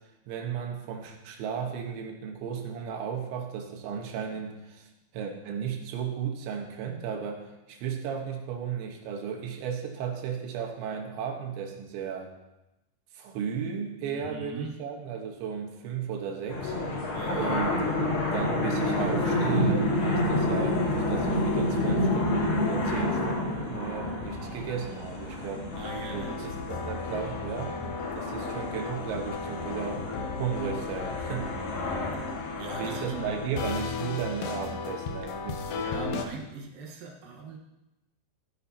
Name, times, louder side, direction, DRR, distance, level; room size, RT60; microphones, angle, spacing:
voice 1, 0.3-4.9 5.1-12.3 13.1-16.8 17.4-17.7 18.3-25.7 26.1-27.8 28.2-30.1 30.4-31.5 32.8-35.6, right 7 dB, 85° right, 2 dB, 3.6 m, -34 dB
voice 2, 14.1-14.7 17.1-17.7 25.8-26.8 28.4-28.5 31.5-32.2 32.6-33.6 35.7-37.6, right 4 dB, 65° right, 1 dB, 2.5 m, -40 dB
sound 1, 16.5-34.0, left 1 dB, 65° left, 4.4 m, -30 dB
sound 2, 25.7-36.2, left 5 dB, 80° left, 2.0 m, -36 dB
16.0 x 9.9 x 2.8 m, 0.96 s
omnidirectional pair, 5.1 m